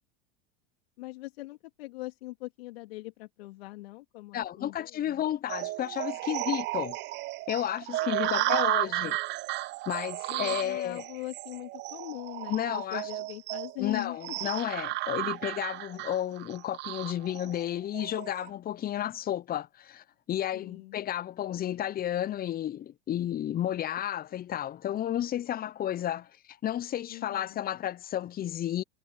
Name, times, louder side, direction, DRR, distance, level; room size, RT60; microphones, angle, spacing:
voice 1, 1.0-5.2 8.0-9.1 10.3-14.2 20.5-21.0 27.1-27.6, left 20 dB, 70° left, 3.5 m, -41 dB
voice 2, 4.3-7.0 7.5-9.2 9.9-11.0 12.5-13.0 13.8-28.8, left 11 dB, 30° left, 0.8 m, -32 dB
sound 1, 5.5-18.5, right 18 dB, 35° right, 0.5 m, -33 dB
hypercardioid pair, 95°, 31 cm